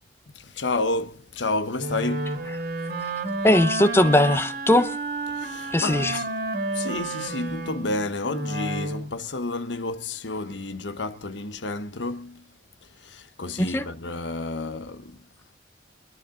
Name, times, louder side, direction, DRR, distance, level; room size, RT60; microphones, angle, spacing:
voice 1, 0.3-2.5 5.3-6.2 6.7-12.4 13.0-15.2, left 2 dB, 85° left, 1.1 m, -30 dB
Wind instrument woodwind instrument, 1.8-9.1, right 2 dB, 60° right, 2.5 m, -30 dB
voice 2, 3.4-5.0 5.7-6.2 13.6-13.9, left 1 dB, 15° left, 0.9 m, -20 dB
23.5 x 12.0 x 3.8 m
head